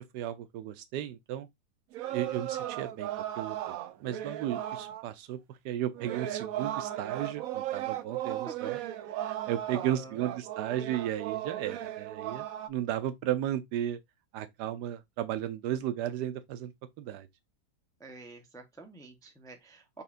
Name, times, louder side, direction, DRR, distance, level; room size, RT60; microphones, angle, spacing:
voice 1, 0.1-1.5 2.1-3.1 3.4-8.8 9.2-14.0 14.3-16.7 17.0-17.3, right 11 dB, 90° right, 1.3 m, -34 dB
sound 1, 1.9-5.0 5.9-12.7, right 12 dB, 70° right, 0.9 m, -36 dB
voice 2, 8.3-8.7 9.7-10.2 18.0-20.0, right 3 dB, 5° left, 0.5 m, -48 dB
5.7 x 3.5 x 2.5 m
omnidirectional pair, 1.7 m